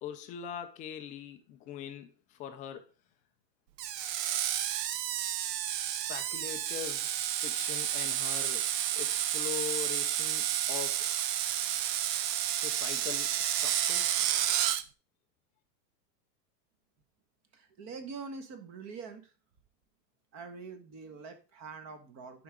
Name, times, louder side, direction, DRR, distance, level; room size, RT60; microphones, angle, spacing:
voice 1, 0.0-2.9 5.9-7.1 7.4-11.1 12.5-14.2, left 9 dB, 20° left, 0.3 m, -42 dB
Screech, 3.8-14.8, right 11 dB, 80° right, 0.8 m, -31 dB
voice 2, 17.5-19.3 20.3-22.4, right 4 dB, 35° right, 1.5 m, -44 dB
11.5 x 4.9 x 3.7 m
supercardioid pair, 140°, 48 cm